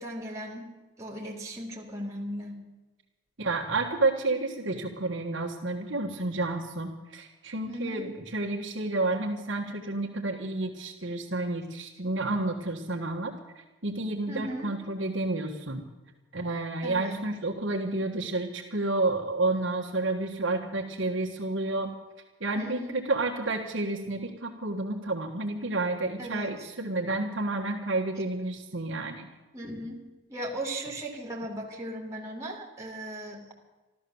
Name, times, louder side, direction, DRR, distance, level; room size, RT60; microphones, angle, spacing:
voice 1, 0.0-2.6 7.7-8.1 14.3-14.7 16.8-17.2 22.6-23.0 26.2-26.7 29.5-33.5, right 1 dB, 15° right, -1 dB, 2.5 m, -37 dB
voice 2, 3.4-15.8 16.3-21.9 22.4-29.3, right 2 dB, 60° right, 1 dB, 1.5 m, -30 dB
13.5 x 13.0 x 7.1 m, 1.2 s
head